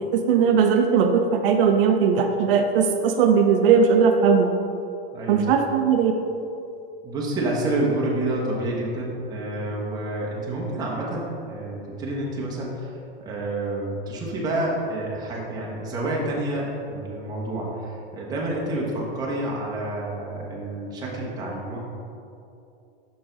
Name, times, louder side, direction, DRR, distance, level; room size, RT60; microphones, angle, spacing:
voice 1, 0.1-4.5 5.3-6.1, right 6 dB, 60° right, 4 dB, 0.6 m, -19 dB
voice 2, 5.1-5.5 7.0-21.8, right 1 dB, 10° right, -4 dB, 0.8 m, -28 dB
6.2 x 6.0 x 3.8 m, 2.7 s
supercardioid pair, 170°, 31 cm